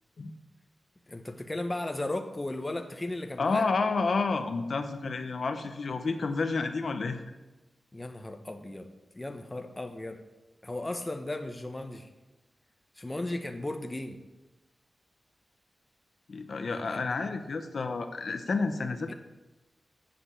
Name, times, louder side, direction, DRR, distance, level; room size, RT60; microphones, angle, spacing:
voice 1, 1.1-3.7 7.9-8.9 9.1-10.2 10.6-12.1 13.0-14.2 16.7-17.0 19.1-19.2, left 2 dB, 20° left, 6 dB, 0.9 m, -36 dB
voice 2, 3.4-7.2 16.3-19.1, left 4 dB, 60° left, 7 dB, 0.8 m, -30 dB
7.9 x 7.0 x 8.3 m, 1.1 s
wide cardioid pair, 120°, 0 cm